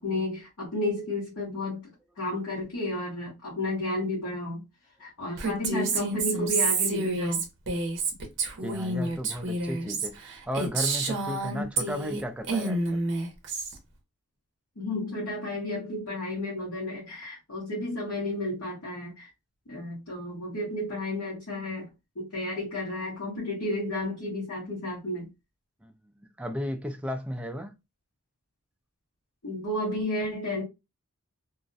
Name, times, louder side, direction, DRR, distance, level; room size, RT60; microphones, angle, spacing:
voice 1, 0.0-1.9 2.2-4.6 5.0-7.4 14.8-19.3 19.7-21.9 22.1-25.3 29.4-30.6, left 1 dB, 65° left, 1.0 m, -32 dB
Female speech woman speaking, 5.4-12.2 12.5-13.7, right 3 dB, 55° right, 0.6 m, -29 dB
voice 2, 8.6-10.2 10.5-13.0 25.8-25.9 26.4-27.7, equal, 5° right, 0.3 m, -34 dB
2.4 x 2.0 x 2.5 m
head